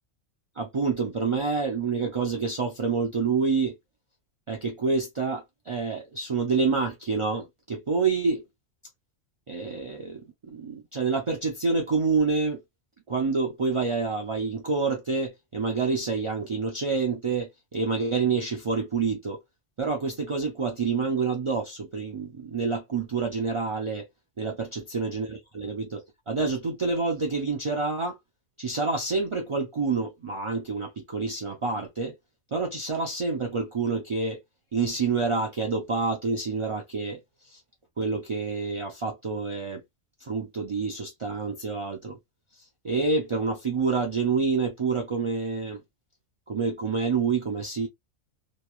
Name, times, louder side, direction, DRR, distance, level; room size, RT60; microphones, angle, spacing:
voice 1, 0.6-3.7 4.5-8.4 9.5-12.6 13.1-19.4 19.8-24.1 24.4-28.2 28.6-32.2 32.5-34.4 34.7-37.2 37.5-37.6 38.0-39.8 40.2-42.2 42.8-45.8 46.5-47.9, right 4 dB, 50° right, 0.3 m, -28 dB
3.0 x 2.3 x 2.2 m
omnidirectional pair, 1.3 m